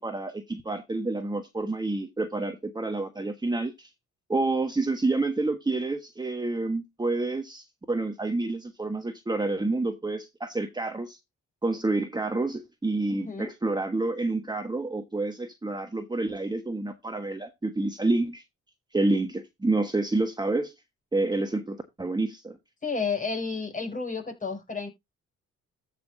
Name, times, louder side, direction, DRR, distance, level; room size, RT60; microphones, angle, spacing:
voice 1, 0.0-3.9 4.3-11.2 11.6-18.4 18.9-20.7 21.1-22.6, right 2 dB, 15° right, 1.3 m, -28 dB
voice 2, 13.1-13.5 22.8-24.9, left 4 dB, 25° left, 6.3 m, -31 dB
14.0 x 6.0 x 2.6 m
cardioid pair, 90°, 30 cm